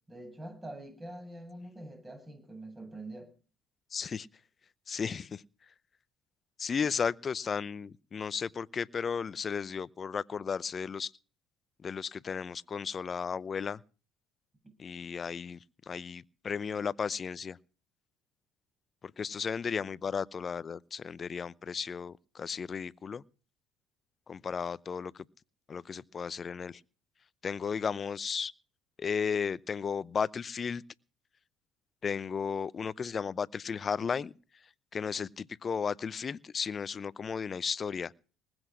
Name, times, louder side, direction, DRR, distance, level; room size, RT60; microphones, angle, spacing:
voice 1, 0.1-3.3, right 1 dB, 20° right, 7.8 m, -45 dB
voice 2, 3.9-4.3 4.9-5.4 6.6-11.1 11.8-13.8 14.8-15.6 15.9-17.6 19.2-23.2 24.3-25.2 25.7-26.8 27.4-28.5 29.0-30.8 32.0-34.3 34.9-38.1, left 6 dB, 40° left, 0.7 m, -34 dB
20.0 x 7.9 x 6.1 m
hypercardioid pair, 65°, 0 cm